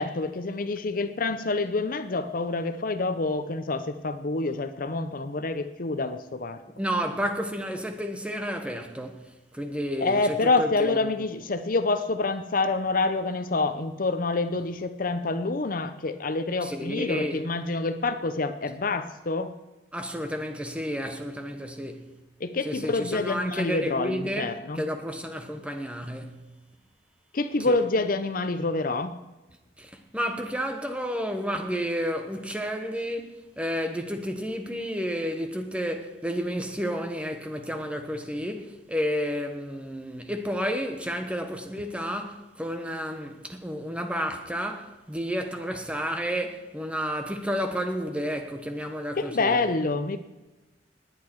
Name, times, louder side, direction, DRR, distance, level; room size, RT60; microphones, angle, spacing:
voice 1, 0.0-6.6 10.0-19.5 22.4-24.8 27.3-29.1 49.2-50.2, left 3 dB, 50° left, 0.7 m, -27 dB
voice 2, 6.8-9.3 9.5-11.0 16.6-17.4 19.9-22.1 22.6-24.5 24.7-26.4 27.6-27.7 29.8-33.3 33.6-49.5, equal, 5° right, 1.2 m, -31 dB
19.5 x 9.5 x 4.7 m
head